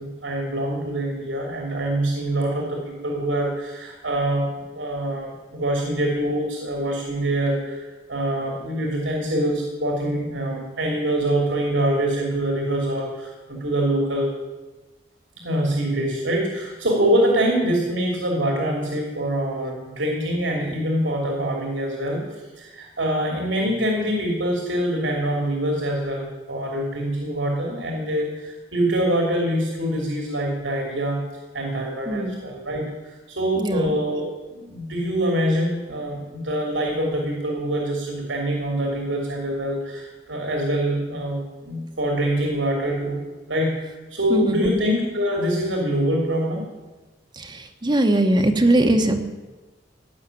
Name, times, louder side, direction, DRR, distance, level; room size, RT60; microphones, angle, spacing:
voice 1, 0.0-14.3 15.4-22.2 22.6-31.2 31.5-43.2 43.5-46.6, right 1 dB, 85° right, 0 dB, 2.9 m, -25 dB
voice 2, 32.1-32.4 33.6-33.9 44.3-44.8 47.3-49.3, right 1 dB, 25° right, 4 dB, 1.0 m, -21 dB
17.5 x 6.5 x 9.9 m, 1.2 s
head